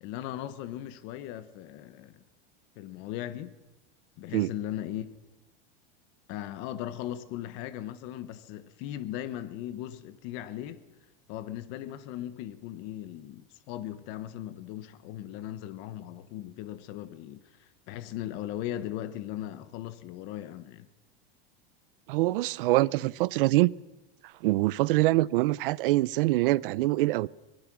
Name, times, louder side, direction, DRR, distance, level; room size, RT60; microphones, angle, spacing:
voice 1, 0.0-2.2 2.7-3.5 4.2-5.0 6.3-10.8 11.3-20.9, left 12 dB, 40° left, 1.3 m, -38 dB
voice 2, 22.1-23.7 24.4-27.3, right 18 dB, 65° right, 0.7 m, -24 dB
24.5 x 21.5 x 6.3 m
supercardioid pair, 170°, 29 cm